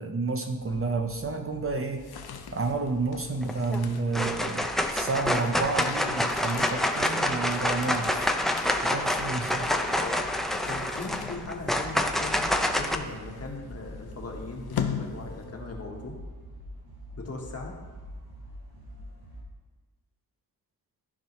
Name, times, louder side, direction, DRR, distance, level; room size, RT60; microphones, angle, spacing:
voice 1, 0.0-2.1 2.5-8.2 8.8-9.7, right 3 dB, 35° right, 4 dB, 0.7 m, -30 dB
sound 1, 0.6-19.4, equal, 90° right, 1.5 m, -47 dB
sound 2, 1.8-15.8, left 8 dB, 75° left, 0.7 m, -41 dB
sound 3, 3.4-3.8 4.1-12.9, left 1 dB, ahead, 0.5 m, -27 dB
voice 2, 9.6-10.2 10.7-16.1 17.2-17.8, left 3 dB, 40° left, 0 dB, 1.4 m, -39 dB
13.5 x 4.7 x 3.1 m, 1.3 s
cardioid pair, 85°, 38 cm